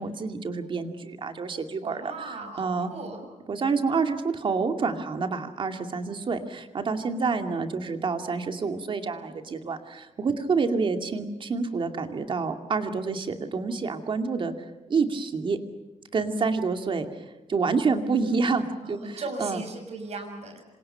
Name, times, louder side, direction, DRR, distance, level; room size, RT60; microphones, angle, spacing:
voice 1, 0.0-2.1 2.6-2.9 3.5-14.5 14.9-15.6 16.1-17.1 17.5-19.6, right 4 dB, 40° right, 6 dB, 2.4 m, -28 dB
voice 2, 1.8-3.2 18.8-20.6, right 3 dB, 60° right, 6 dB, 6.6 m, -37 dB
27.5 x 27.0 x 5.7 m, 1.1 s
wide cardioid pair, 165°, 13 cm